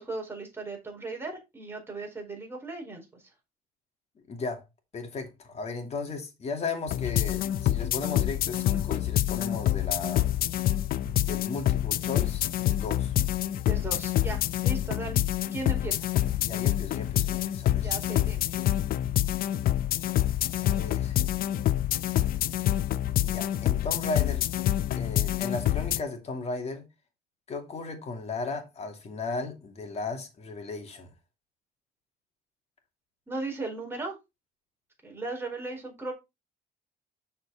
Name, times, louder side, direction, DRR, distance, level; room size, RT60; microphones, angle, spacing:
voice 1, 0.0-3.2 13.6-15.2 15.5-16.1 17.8-18.4 33.3-34.2 35.0-36.1, right 3 dB, 15° right, 4.7 m, -37 dB
voice 2, 4.3-4.6 4.9-10.3 11.0-13.1 16.4-17.9 20.6-21.2 23.2-24.5 24.9-26.8 27.5-31.1, left 3 dB, 40° left, 2.7 m, -36 dB
sound 1, 6.9-26.0, left 13 dB, 60° left, 0.6 m, -27 dB
7.0 x 6.5 x 4.1 m
cardioid pair, 110°, 17 cm